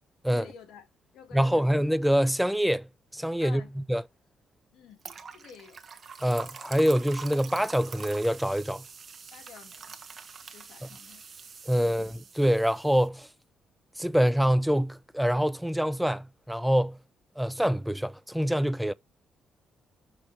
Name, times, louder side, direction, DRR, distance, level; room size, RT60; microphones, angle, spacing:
voice 1, 0.3-0.9 1.1-1.6 3.4-3.7 4.7-5.0 5.3-5.8 9.3-10.0 10.5-11.2, left 7 dB, 80° left, 2.1 m, -50 dB
voice 2, 1.3-3.6 3.9-4.0 6.2-8.8 11.7-13.3 14.0-17.0 17.4-18.9, equal, ahead, 0.4 m, -25 dB
sound 1, 5.0-13.1, right 6 dB, 45° right, 1.2 m, -45 dB
6.3 x 3.3 x 4.8 m
cardioid pair, 90°, 0 cm